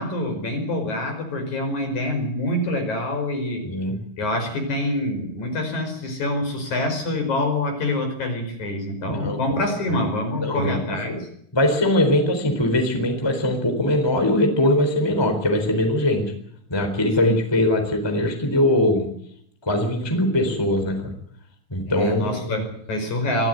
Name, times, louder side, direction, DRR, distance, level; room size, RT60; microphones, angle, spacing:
voice 1, 0.0-3.6 4.2-11.3 17.2-17.4 21.9-23.5, left 1 dB, 50° left, 4 dB, 6.3 m, -26 dB
voice 2, 3.6-4.0 9.1-9.6 9.9-10.0 10.4-11.2 11.5-16.3 16.7-19.1 19.6-21.1 21.7-22.6, left 1 dB, 5° left, 5 dB, 3.6 m, -21 dB
24.0 x 15.5 x 9.3 m, 0.68 s
omnidirectional pair, 4.5 m